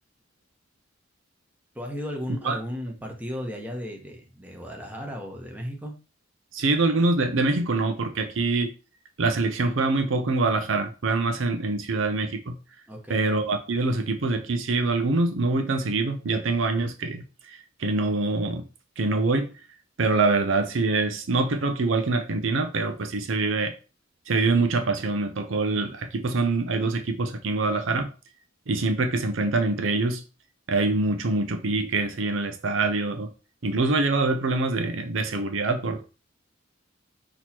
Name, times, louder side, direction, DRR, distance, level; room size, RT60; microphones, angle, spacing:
voice 1, 1.7-5.9 12.9-13.2, equal, 10° right, 1.0 m, -35 dB
voice 2, 6.5-8.7 9.2-12.6 13.1-18.6 19.0-19.5 20.0-23.7 24.3-28.1 28.7-30.2 30.7-33.3 33.6-36.1, right 3 dB, 80° right, 0.6 m, -25 dB
6.2 x 3.0 x 2.9 m
head